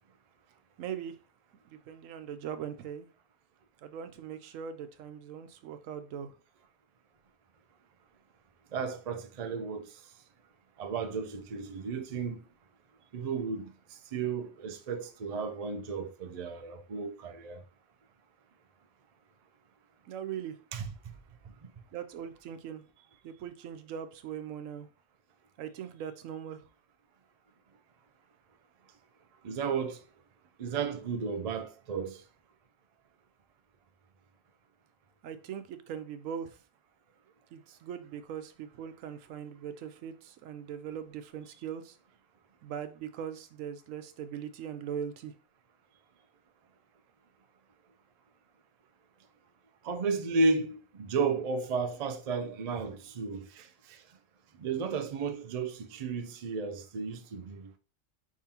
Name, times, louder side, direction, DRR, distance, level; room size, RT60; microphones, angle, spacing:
voice 1, 0.8-1.1 1.7-3.1 3.8-6.3 20.1-20.6 21.9-22.8 23.2-24.9 25.6-26.6 35.2-36.5 37.5-41.9 42.6-45.3, right 8 dB, 90° right, 1.0 m, -40 dB
voice 2, 8.7-10.1 10.8-12.4 13.1-17.6 20.7-21.2 21.4-21.7 29.4-30.0 30.6-32.2 49.8-54.2 54.6-57.7, right 4 dB, 50° right, 0.4 m, -33 dB
5.1 x 3.6 x 2.8 m
omnidirectional pair, 1.3 m